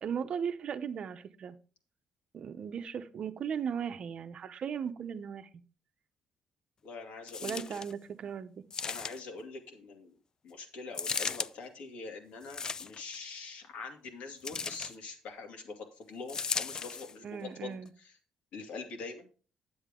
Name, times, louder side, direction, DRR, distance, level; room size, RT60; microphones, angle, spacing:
voice 1, 0.0-1.6 2.3-5.5 7.4-8.6 14.5-14.7 17.2-17.9, right 7 dB, 50° right, 10 dB, 0.8 m, -37 dB
voice 2, 6.8-7.6 8.8-10.2 10.4-18.1 18.5-19.3, left 4 dB, 75° left, 3 dB, 2.5 m, -44 dB
sound 1, 7.3-7.9 8.7-9.4 10.9-11.5 12.4-13.2 14.4-15.0 16.3-17.1 17.9-18.0, left 5 dB, 30° left, 0.3 m, -36 dB
10.5 x 7.9 x 3.7 m, 0.37 s
cardioid pair, 155°, 2 cm